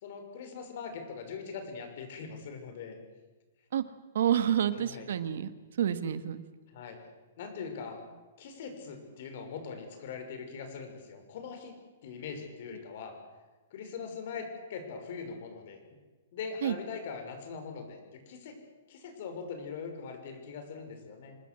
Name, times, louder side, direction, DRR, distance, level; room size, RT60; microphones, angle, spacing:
voice 1, 0.0-3.0 4.8-5.1 6.7-7.0 7.4-8.0 8.4-11.7 12.0-13.2 13.7-15.8 16.3-18.6 18.9-21.4, left 5 dB, 50° left, 6 dB, 6.2 m, -41 dB
voice 2, 4.1-5.5 5.8-6.4 16.6-16.8, right 9 dB, 70° right, 12 dB, 1.8 m, -28 dB
27.0 x 20.0 x 8.0 m, 1.3 s
hypercardioid pair, 160°, 0 cm